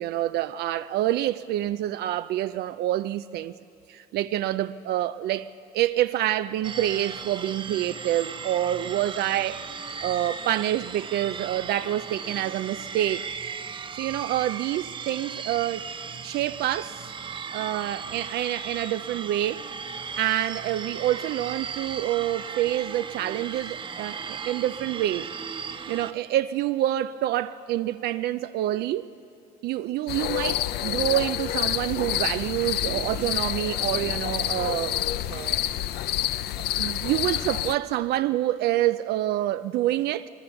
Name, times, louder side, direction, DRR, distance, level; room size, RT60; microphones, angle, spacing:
voice 1, 0.0-3.5 3.9-5.5 5.7-9.7 10.0-13.3 13.9-15.9 16.2-17.0 17.5-19.9 20.2-25.3 25.9-29.1 29.6-35.6 36.6-40.3, right 13 dB, 75° right, 0.5 m, -27 dB
sound 1, 6.6-26.1, right 6 dB, 30° right, 0.7 m, -37 dB
sound 2, 30.1-37.7, left 13 dB, 75° left, 0.6 m, -28 dB
22.5 x 21.0 x 7.0 m
cardioid pair, 110°, 17 cm